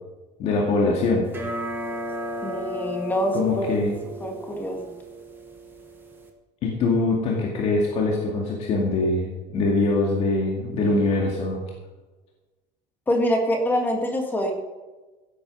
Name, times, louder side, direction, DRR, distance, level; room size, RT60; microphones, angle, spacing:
voice 1, 0.4-1.3 3.3-3.9 6.6-11.6, left 3 dB, 40° left, -2 dB, 2.2 m, -23 dB
sound 1, 1.3-6.3, left 1 dB, 15° right, 1.3 m, -34 dB
voice 2, 2.4-3.7 4.2-4.9 13.1-14.5, equal, 10° left, 2 dB, 1.8 m, -25 dB
16.0 x 8.3 x 5.5 m, 1.2 s
cardioid pair, 180°, 16 cm